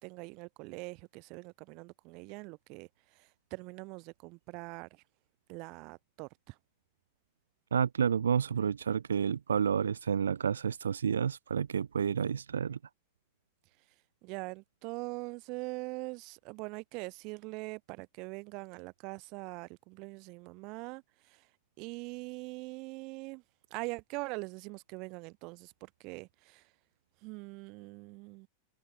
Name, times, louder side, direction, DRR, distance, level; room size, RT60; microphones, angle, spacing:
voice 1, 0.0-5.0 5.5-6.6 14.2-21.5 21.8-23.4 23.7-26.7 27.2-28.5, right 27 dB, 45° right, 1.2 m, -43 dB
voice 2, 7.7-12.8, right 7 dB, 70° right, 0.3 m, -30 dB
open air
figure-of-eight pair, 90°, 0 cm